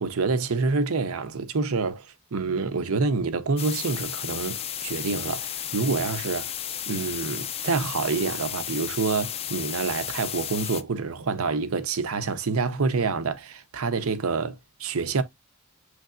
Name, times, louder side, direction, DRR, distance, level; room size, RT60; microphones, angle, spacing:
voice 1, 0.0-6.5 6.9-15.2, right 4 dB, 75° right, 0.7 m, -27 dB
sound 1, 3.6-10.8, left 10 dB, 30° left, 0.3 m, -33 dB
6.5 x 3.2 x 2.5 m
head